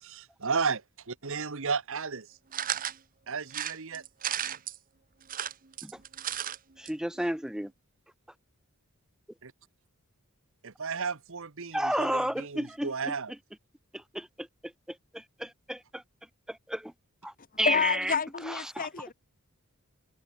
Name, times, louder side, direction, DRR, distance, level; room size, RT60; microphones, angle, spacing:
voice 1, 0.0-2.3 3.3-4.0 9.4-9.5 10.6-13.3, right 5 dB, 65° right, 1.3 m, -33 dB
sound 1, 2.5-3.0 3.5-4.8 5.2-6.6 6.9-7.0 7.2-7.3, right 10 dB, 40° right, 0.9 m, -34 dB
voice 2, 6.8-7.7 11.7-13.1 13.9-16.0 16.5-16.9 17.2-18.2 18.5-18.9, right 1 dB, 5° right, 0.7 m, -32 dB
voice 3, 17.6-19.1, left 6 dB, 40° left, 1.2 m, -29 dB
head